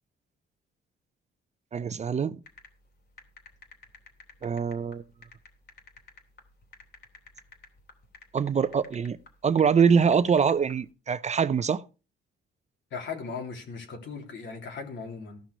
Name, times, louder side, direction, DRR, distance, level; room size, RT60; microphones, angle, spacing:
voice 1, 1.7-2.3 4.4-5.0 8.3-9.2 9.4-11.8, right 6 dB, 35° right, 0.6 m, -24 dB
sound 1, 2.5-10.8, left 4 dB, 55° left, 3.1 m, -52 dB
voice 2, 12.9-15.4, left 5 dB, 70° left, 3.3 m, -38 dB
14.5 x 5.9 x 5.4 m
cardioid pair, 90°, 20 cm